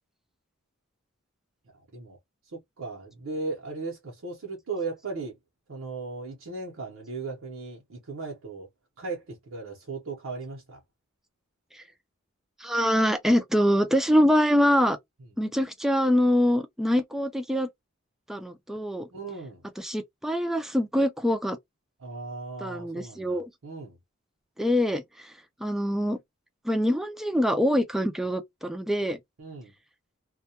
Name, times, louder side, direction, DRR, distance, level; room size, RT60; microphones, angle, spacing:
voice 1, 2.8-5.3 5.7-8.7 9.0-10.8 19.1-19.6 22.0-24.0 29.4-29.7, right 3 dB, 85° right, 0.8 m, -37 dB
voice 2, 12.6-15.0 15.4-17.7 18.3-19.1 19.8-21.6 22.6-23.5 24.6-25.3 25.6-26.2 26.6-29.2, equal, ahead, 0.3 m, -24 dB
2.2 x 2.1 x 2.7 m
head